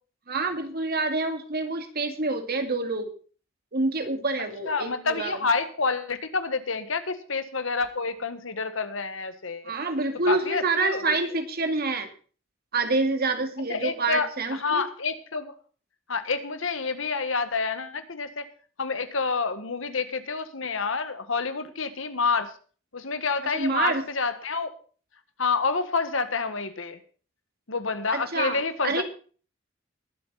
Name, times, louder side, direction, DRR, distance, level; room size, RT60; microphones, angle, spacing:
voice 1, 0.3-3.1 3.7-5.4 9.6-12.1 12.7-14.8 23.5-24.0 28.1-28.6 28.8-29.0, right 3 dB, 50° right, 6 dB, 2.3 m, -27 dB
voice 2, 4.7-9.7 10.2-11.0 13.7-15.5 16.1-18.5 18.8-22.5 22.9-24.7 25.4-27.0 27.7-29.0, left 4 dB, 70° left, 10 dB, 1.6 m, -28 dB
21.0 x 8.0 x 4.2 m, 0.40 s
head